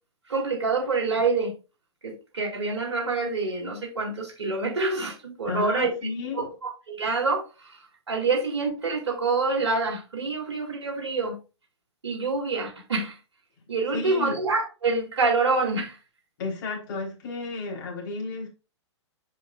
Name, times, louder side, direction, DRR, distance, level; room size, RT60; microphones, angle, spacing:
voice 1, 0.3-1.5 2.0-5.9 6.3-7.8 8.1-11.4 12.0-13.2 13.7-16.0, right 3 dB, 65° right, 2.4 m, -26 dB
voice 2, 5.5-6.5 13.9-14.4 16.4-18.5, left 3 dB, 45° left, 3.7 m, -32 dB
7.7 x 6.2 x 2.4 m
figure-of-eight pair, 115°, 15 cm